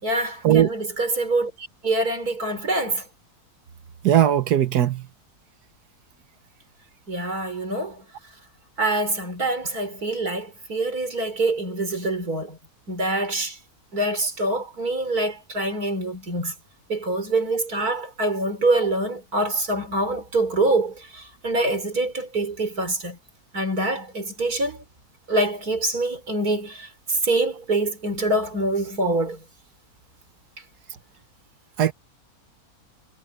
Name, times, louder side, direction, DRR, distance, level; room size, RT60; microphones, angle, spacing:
voice 1, 0.0-3.0 7.1-8.0 8.8-12.6 12.9-13.6 13.9-16.5 16.9-23.2 23.5-24.8 25.3-29.4, right 2 dB, 70° right, 4.8 m, -25 dB
voice 2, 4.0-5.0 31.8-31.9, right 10 dB, 90° right, 1.6 m, -18 dB
omnidirectional pair, 1.7 m